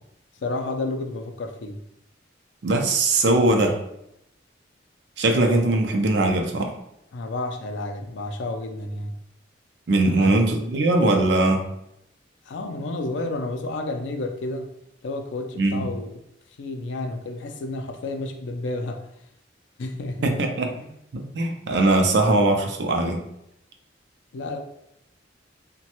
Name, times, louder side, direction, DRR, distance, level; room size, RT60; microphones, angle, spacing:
voice 1, 0.4-1.8 7.1-9.1 10.0-10.3 12.5-14.7 15.0-16.2 16.6-19.1 19.8-20.3 20.8-20.9 24.3-24.6, left 2 dB, 75° left, 5 dB, 0.4 m, -31 dB
voice 2, 2.6-3.8 5.2-6.7 9.9-11.7 15.6-15.9 20.2-20.7 21.1-23.2, right 2 dB, 65° right, 4 dB, 0.4 m, -20 dB
3.0 x 2.2 x 2.9 m, 0.79 s
head